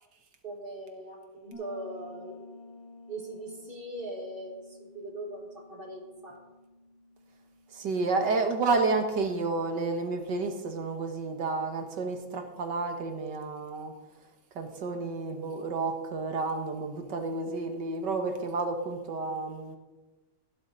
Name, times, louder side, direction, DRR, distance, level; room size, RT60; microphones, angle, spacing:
voice 1, 0.4-2.6 3.1-6.4, right 1 dB, 30° right, 1 dB, 2.3 m, -40 dB
Piano, 1.5-10.0, left 2 dB, 45° left, 6.2 m, -53 dB
voice 2, 7.7-13.9 14.6-19.8, right 3 dB, 75° right, 5 dB, 2.1 m, -30 dB
15.0 x 12.0 x 4.0 m, 1.1 s
omnidirectional pair, 1.9 m